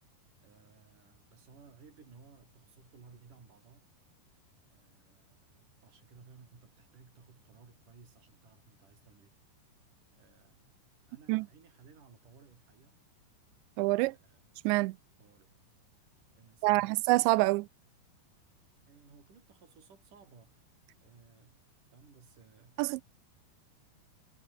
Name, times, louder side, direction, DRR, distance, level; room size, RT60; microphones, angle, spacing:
voice 1, 0.4-3.9 4.7-9.3 10.2-10.8 11.1-13.0 14.1-14.4 15.2-15.6 16.3-17.0 18.9-20.7 21.0-21.6 21.9-23.0, right 5 dB, 45° right, 6.7 m, -58 dB
voice 2, 13.8-14.1 14.6-15.0 16.6-17.7 22.8-23.0, right 23 dB, 85° right, 2.9 m, -26 dB
omnidirectional pair, 5.1 m